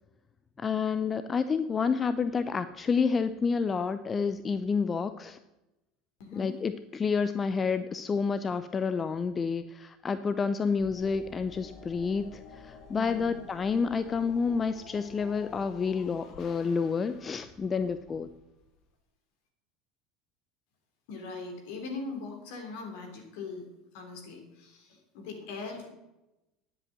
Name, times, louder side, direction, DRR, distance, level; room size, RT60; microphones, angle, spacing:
voice 1, 0.6-5.4 6.3-18.3, left 5 dB, 30° left, 12 dB, 0.6 m, -29 dB
voice 2, 6.2-6.5 12.9-13.3 17.7-17.9 21.1-23.7 23.9-25.9, left 4 dB, 65° left, 3 dB, 3.3 m, -40 dB
sound 1, 10.8-18.9, left 4 dB, 50° left, 1.6 m, -50 dB
10.5 x 7.9 x 7.5 m, 0.97 s
figure-of-eight pair, 70°, 0 cm